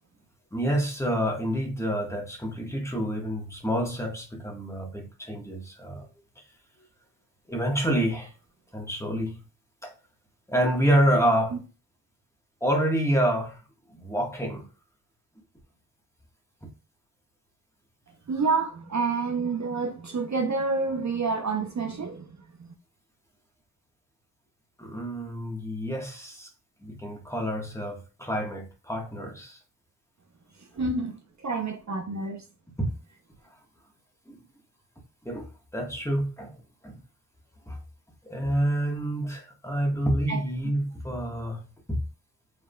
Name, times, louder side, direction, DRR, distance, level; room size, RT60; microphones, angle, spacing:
voice 1, 0.5-6.1 7.5-8.3 8.7-9.4 9.8-9.9 10.5-11.6 12.6-13.6 14.0-14.7 24.8-26.5 26.8-29.6 32.8-32.9 34.3-34.4 35.2-35.4 35.7-37.0 37.7-37.8 38.3-41.6 41.9-42.0, equal, 5° left, 1.3 m, -28 dB
voice 2, 18.3-22.7 30.6-32.4 40.3-40.7, right 4 dB, 45° right, 0.7 m, -29 dB
5.5 x 3.6 x 2.2 m
wide cardioid pair, 75°, 38 cm